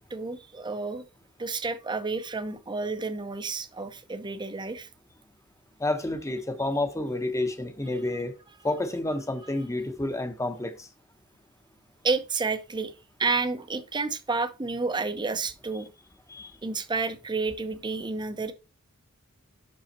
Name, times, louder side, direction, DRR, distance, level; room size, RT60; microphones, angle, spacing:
voice 1, 0.1-1.0 1.4-4.9 12.0-12.9 13.2-15.9 16.6-18.5, right 4 dB, 20° right, 0.8 m, -30 dB
voice 2, 5.8-8.4 8.6-10.9 16.3-16.5, left 2 dB, 15° left, 0.9 m, -29 dB
6.2 x 5.5 x 4.2 m
head